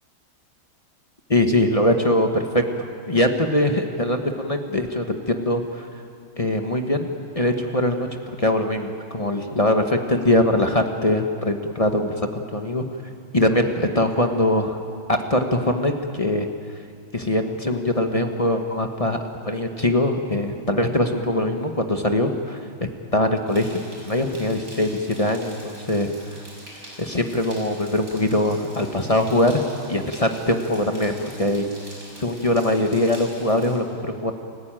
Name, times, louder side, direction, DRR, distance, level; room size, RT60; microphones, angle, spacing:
voice 1, 1.3-5.9 6.4-8.1 8.4-12.8 13.3-14.8 15.1-16.5 17.1-19.2 19.4-26.1 27.0-29.6 29.9-31.7 32.2-34.3, left 1 dB, 20° left, 4 dB, 1.0 m, -22 dB
sound 1, 23.5-33.8, right 1 dB, 40° right, 6.4 m, -44 dB
29.5 x 15.0 x 9.0 m, 2.3 s
omnidirectional pair, 2.3 m